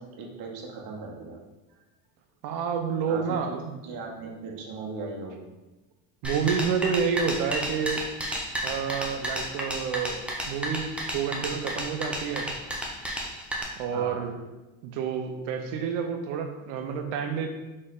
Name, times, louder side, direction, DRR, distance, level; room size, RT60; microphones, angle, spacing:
voice 1, 0.0-1.4 1.7-1.8 3.1-3.5 3.8-5.5 13.9-14.3, right 3 dB, 55° right, 0 dB, 1.1 m, -38 dB
voice 2, 2.4-3.6 6.2-8.0 8.6-10.2 10.5-12.5 13.8-14.3 14.8-17.5, right 6 dB, 75° right, 6 dB, 0.8 m, -29 dB
sound 1, 6.2-13.6, equal, 5° right, 0.6 m, -32 dB
3.9 x 3.2 x 3.8 m, 1.1 s
supercardioid pair, 105°, 43 cm